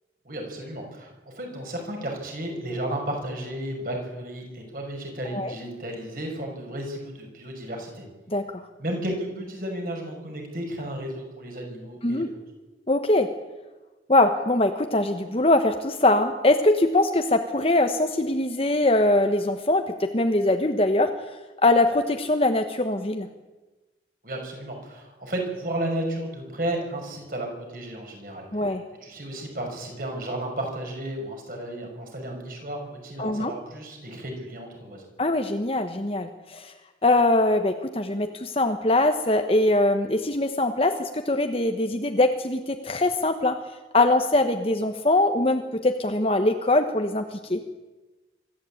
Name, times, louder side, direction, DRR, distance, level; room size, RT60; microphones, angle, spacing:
voice 1, 0.2-8.1 8.8-12.2 24.2-28.8 29.0-35.0, right 1 dB, 50° right, 2 dB, 5.8 m, -33 dB
voice 2, 12.9-13.3 14.1-21.3 21.6-23.3 28.5-28.8 33.2-33.5 35.2-36.7 37.0-43.6 43.9-47.6, left 2 dB, 30° left, 5 dB, 1.1 m, -22 dB
24.5 x 13.5 x 8.6 m, 1.2 s
head